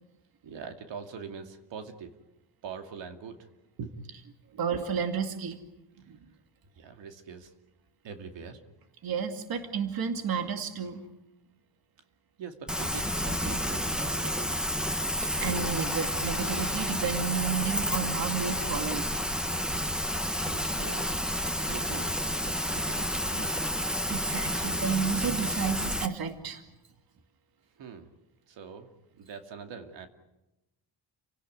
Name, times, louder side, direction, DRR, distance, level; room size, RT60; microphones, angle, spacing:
voice 1, 0.4-2.1 2.6-3.5 3.8-3.9 4.5-4.6 6.8-7.5 8.0-8.6 12.4-14.5 20.2-21.1 21.6-23.7 27.8-28.1 28.5-28.9 29.2-30.1, right 6 dB, 80° right, 6 dB, 2.6 m, -43 dB
voice 2, 4.6-5.6 6.1-6.2 9.0-11.0 15.4-19.1 24.1-26.6, right 7 dB, 55° right, 6 dB, 2.3 m, -31 dB
Rain, 12.7-26.1, equal, ahead, 1.4 m, -30 dB
29.5 x 18.0 x 9.4 m, 0.95 s
cardioid pair, 145°, 44 cm